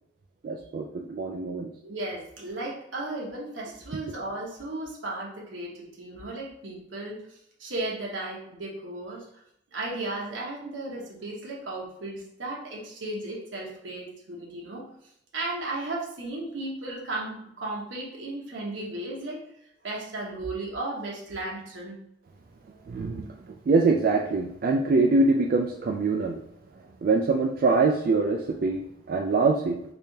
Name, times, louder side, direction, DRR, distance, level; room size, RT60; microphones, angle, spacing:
voice 1, 0.4-1.7 22.9-26.4 27.0-29.8, right 3 dB, 50° right, 2 dB, 0.3 m, -24 dB
voice 2, 1.8-7.2 7.6-9.3 9.7-14.8 15.3-19.4 19.8-22.0, right 2 dB, 80° right, -3 dB, 1.0 m, -35 dB
3.4 x 3.3 x 2.7 m, 0.76 s
head